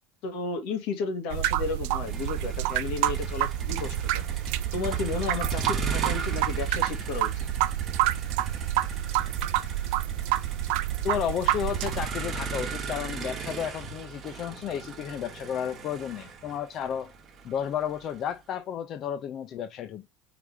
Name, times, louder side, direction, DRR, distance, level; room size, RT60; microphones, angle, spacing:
voice 1, 0.2-4.0 4.7-7.3, left 4 dB, 55° left, 1.7 m, -33 dB
sound 1, 1.3-12.1, right 14 dB, 65° right, 0.5 m, -28 dB
Motor vehicle (road), 2.1-18.2, right 5 dB, 25° right, 1.1 m, -36 dB
voice 2, 11.0-17.1 17.4-20.1, left 9 dB, 35° left, 0.4 m, -32 dB
4.8 x 3.3 x 3.3 m
cardioid pair, 160°, 0 cm